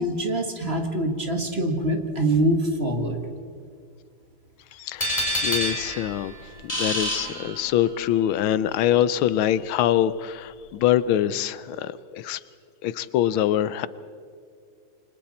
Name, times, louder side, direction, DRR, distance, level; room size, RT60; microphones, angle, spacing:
voice 1, 0.0-3.2, right 1 dB, 30° right, 4 dB, 2.1 m, -24 dB
voice 2, 4.7-5.1 5.4-6.3 6.6-12.4 12.8-13.9, left 11 dB, 85° left, 16 dB, 1.5 m, -24 dB
sound 1, 5.0-8.0, equal, 15° left, 4.0 m, -28 dB
28.0 x 25.0 x 4.3 m, 2.2 s
omnidirectional pair, 2.2 m